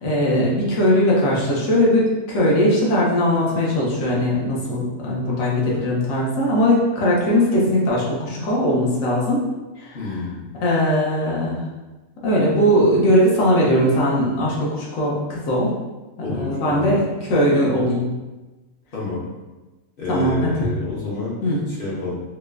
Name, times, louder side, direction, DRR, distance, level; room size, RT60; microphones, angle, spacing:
voice 1, 0.0-9.4 10.6-11.6 12.2-15.7 16.3-18.1 20.1-20.5 21.4-21.6, equal, 75° left, -5 dB, 1.2 m, -19 dB
voice 2, 9.9-10.5 16.2-17.0 18.9-19.2 20.0-21.4 21.6-22.2, left 3 dB, 50° left, -5 dB, 0.8 m, -28 dB
4.2 x 2.1 x 2.3 m, 1.1 s
omnidirectional pair, 1.5 m